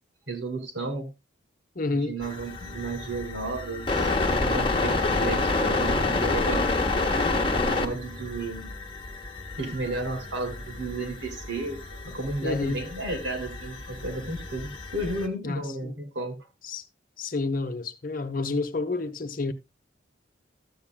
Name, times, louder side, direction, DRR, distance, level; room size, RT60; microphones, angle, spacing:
voice 1, 0.3-1.1 1.9-6.7 7.6-8.7 9.6-16.4, right 2 dB, 75° right, 2.7 m, -33 dB
voice 2, 1.8-2.1 12.4-12.8 15.4-15.9 16.6-16.8 17.2-19.5, left 3 dB, 45° left, 0.8 m, -29 dB
sound 1, 2.2-15.3, left 3 dB, 25° left, 1.1 m, -29 dB
13.0 x 8.7 x 2.2 m
head